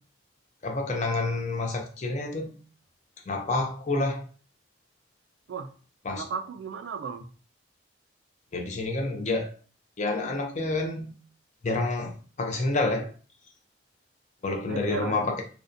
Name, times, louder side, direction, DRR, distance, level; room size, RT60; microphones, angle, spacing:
voice 1, 0.6-2.6 3.3-4.2 6.1-6.2 8.5-9.5 10.0-11.1 11.6-13.1 14.4-15.4, left 2 dB, 40° left, 3 dB, 0.4 m, -28 dB
voice 2, 6.1-7.2 14.7-15.3, right 5 dB, 75° right, 8 dB, 0.3 m, -35 dB
2.5 x 2.1 x 2.5 m, 0.38 s
head